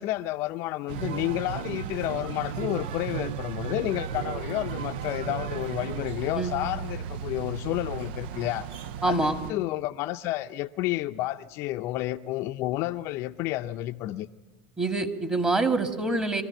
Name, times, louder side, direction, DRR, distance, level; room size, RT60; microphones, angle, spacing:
voice 1, 0.0-14.3, left 16 dB, 55° left, 0.6 m, -31 dB
sound 1, 0.9-9.5, right 8 dB, 70° right, 0.6 m, -35 dB
voice 2, 9.0-9.3 14.8-16.4, right 3 dB, 15° right, 2.0 m, -25 dB
23.5 x 14.0 x 9.2 m
hypercardioid pair, 100°, 6 cm